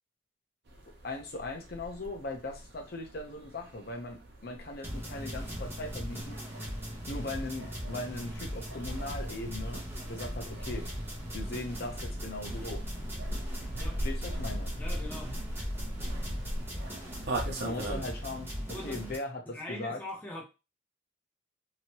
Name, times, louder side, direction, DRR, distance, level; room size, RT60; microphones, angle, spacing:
sound 1, 0.7-18.0, right 1 dB, 60° right, 0.8 m, -40 dB
voice 1, 1.0-6.4 7.1-9.8 10.1-10.9 11.3-12.8 14.0-14.7 17.6-20.0, left 2 dB, 55° left, 0.7 m, -39 dB
sound 2, 4.8-19.2, equal, 10° right, 0.9 m, -39 dB
voice 2, 14.8-15.4 18.7-19.0 19.5-20.4, left 1 dB, 10° left, 0.6 m, -41 dB
3.0 x 2.8 x 2.9 m
head